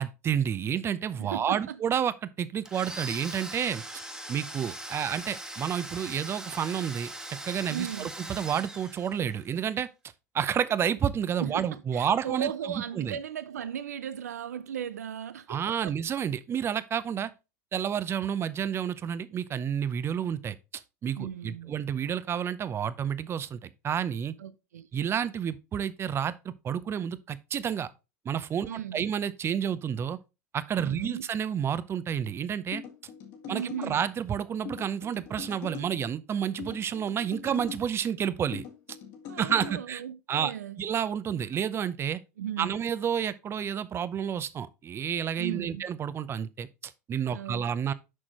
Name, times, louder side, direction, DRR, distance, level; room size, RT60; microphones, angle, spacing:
voice 1, 0.0-3.8 4.3-9.9 10.3-12.5 12.8-13.2 15.5-17.3 17.7-24.3 24.9-27.9 28.2-30.2 30.5-32.8 33.5-38.6 39.4-40.0 40.3-40.5 40.8-42.2 42.6-47.9, right 8 dB, 30° right, 0.6 m, -30 dB
voice 2, 1.2-1.8 7.7-8.1 11.4-15.9 21.2-21.7 24.4-24.9 28.6-29.1 30.8-31.2 33.5-34.0 39.3-40.8 42.4-42.7 45.4-45.8 47.3-47.9, right 9 dB, 80° right, 0.4 m, -37 dB
Domestic sounds home sounds, 2.7-9.4, right 1 dB, 5° right, 1.3 m, -41 dB
sound 1, 32.7-34.0 34.7-35.9 36.6-37.8 38.5-39.7, left 8 dB, 55° left, 2.1 m, -42 dB
6.3 x 6.0 x 3.0 m
hypercardioid pair, 85°, 9 cm